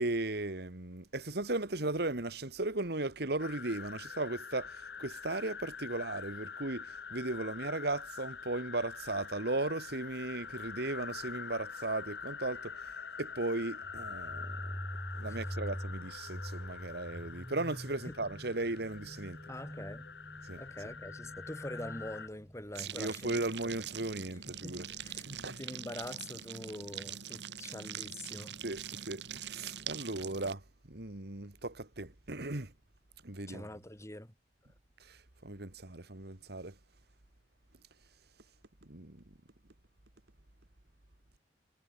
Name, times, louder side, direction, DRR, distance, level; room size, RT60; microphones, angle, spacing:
voice 1, 0.0-12.9 13.2-14.6 15.1-19.4 20.4-20.6 22.8-24.9 25.2-25.6 28.6-30.6 30.9-32.7 33.2-33.7 35.0-36.7 38.8-39.3, right 2 dB, 65° right, 2.1 m, -37 dB
sound 1, 3.4-22.3, left 6 dB, 75° left, 1.2 m, -45 dB
sound 2, 13.8-25.4, equal, 15° right, 2.4 m, -45 dB
voice 2, 19.5-20.1 20.6-23.4 24.5-28.6 33.5-34.3, left 1 dB, 15° left, 4.0 m, -44 dB
sound 3, 22.7-30.5, right 8 dB, 80° right, 3.7 m, -43 dB
head